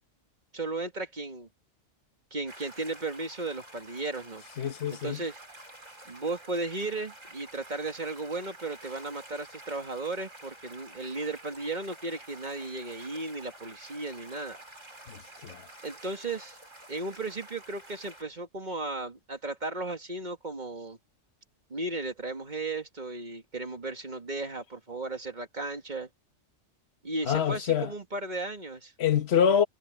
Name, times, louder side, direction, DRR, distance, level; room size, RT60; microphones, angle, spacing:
voice 1, 0.5-1.5 2.3-4.4 4.9-5.4 6.1-14.6 15.8-16.6 16.9-21.0 21.7-26.1 27.0-28.9, right 2 dB, 35° right, 2.3 m, -35 dB
sound 1, 2.5-18.2, right 1 dB, 90° right, 7.1 m, -50 dB
voice 2, 4.6-5.2 15.1-15.6 27.3-27.9 29.0-29.7, left 8 dB, 60° left, 1.4 m, -26 dB
omnidirectional pair, 1.3 m